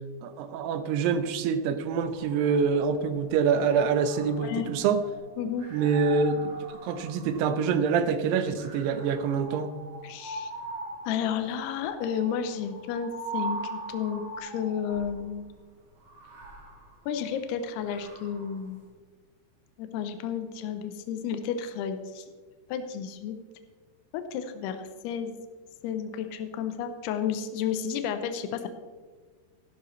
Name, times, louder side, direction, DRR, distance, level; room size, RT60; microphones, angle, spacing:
voice 1, 0.2-5.0 5.7-6.5 6.8-9.7, right 6 dB, 80° right, 10 dB, 2.8 m, -26 dB
sound 1, 1.9-3.1 3.5-7.9 8.6-15.2 16.0-18.6, right 3 dB, 55° right, 4.5 m, -41 dB
voice 2, 4.4-4.7 5.4-5.7 10.0-10.5 11.1-15.5 17.1-18.8 19.8-22.2 22.7-23.4 24.1-25.4 25.8-28.7, left 8 dB, 80° left, 8 dB, 2.8 m, -32 dB
14.5 x 12.0 x 3.2 m, 1.4 s
omnidirectional pair, 4.7 m